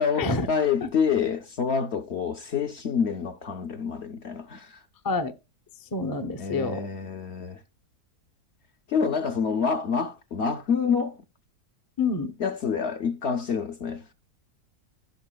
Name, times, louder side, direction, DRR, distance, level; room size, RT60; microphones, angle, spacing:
voice 1, 0.0-4.8 6.4-7.6 8.9-11.2 12.4-14.0, left 6 dB, 55° left, 0.8 m, -27 dB
voice 2, 5.8-6.9 12.0-12.3, left 3 dB, 25° left, 0.4 m, -27 dB
16.0 x 5.6 x 2.2 m
omnidirectional pair, 1.7 m